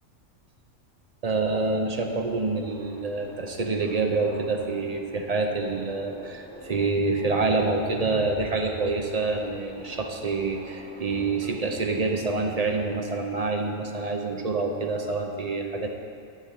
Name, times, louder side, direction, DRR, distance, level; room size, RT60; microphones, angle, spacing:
voice 1, 1.2-15.9, right 3 dB, 40° right, 3 dB, 0.5 m, -27 dB
Subway metro underground, 1.8-13.2, equal, 5° left, 2.5 m, -47 dB
7.5 x 6.8 x 6.9 m, 2.3 s
omnidirectional pair, 1.5 m